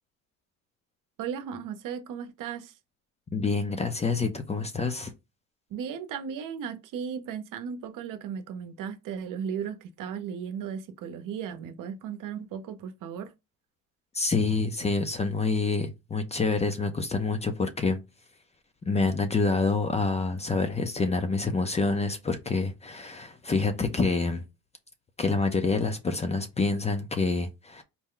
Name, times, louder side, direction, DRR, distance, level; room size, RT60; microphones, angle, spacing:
voice 1, 1.2-2.7 5.7-13.3, right 7 dB, 65° right, 0.8 m, -36 dB
voice 2, 3.3-5.1 14.1-18.0 18.9-24.4 25.2-27.8, left 3 dB, 20° left, 0.5 m, -27 dB
4.2 x 2.2 x 3.7 m
cardioid pair, 120°, 34 cm